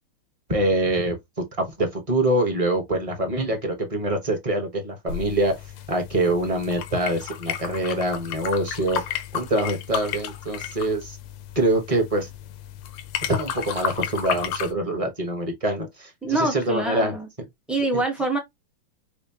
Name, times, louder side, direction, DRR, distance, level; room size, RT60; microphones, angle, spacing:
voice 1, 0.5-1.2 1.6-5.6 5.9-11.2 11.5-12.3 13.3-17.1 17.9-18.0, right 1 dB, 25° right, 0.8 m, -25 dB
sound 1, 5.1-14.7, left 9 dB, 90° left, 1.6 m, -33 dB
voice 2, 16.2-17.3 17.7-18.4, right 2 dB, ahead, 0.4 m, -25 dB
6.5 x 2.2 x 2.8 m
omnidirectional pair, 2.3 m